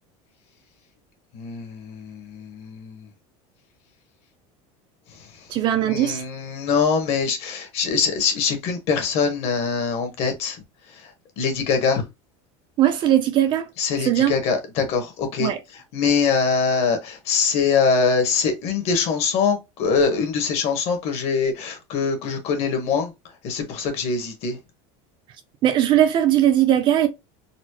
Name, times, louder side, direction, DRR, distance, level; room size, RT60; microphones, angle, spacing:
voice 1, 1.3-3.0 5.8-10.6 11.4-12.0 13.8-15.5 15.9-23.1 23.4-24.6, left 5 dB, 45° left, 1.1 m, -23 dB
voice 2, 5.5-6.2 12.8-13.7 14.1-14.3 15.4-15.6 25.6-27.1, right 11 dB, 35° right, 0.4 m, -19 dB
4.1 x 2.0 x 2.9 m
cardioid pair, 165°, 15 cm